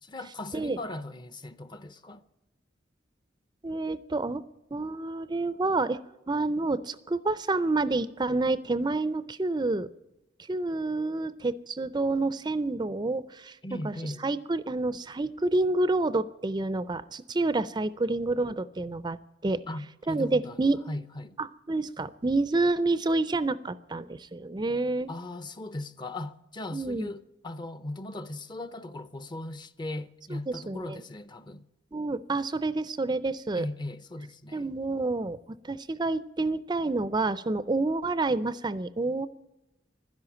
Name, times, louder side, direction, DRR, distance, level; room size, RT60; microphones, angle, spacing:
voice 1, 0.0-2.2 13.6-14.3 19.7-20.6 20.9-21.4 25.1-31.7 33.6-34.7, left 1 dB, 25° left, 0.6 m, -38 dB
voice 2, 3.6-4.4 4.7-6.0 6.3-9.9 10.5-13.6 13.8-19.2 19.4-19.6 20.1-20.8 21.4-25.1 26.7-27.1 30.5-31.0 31.9-33.7 34.5-35.4 35.6-39.3, right 2 dB, 25° right, 0.4 m, -28 dB
12.0 x 10.5 x 9.9 m
head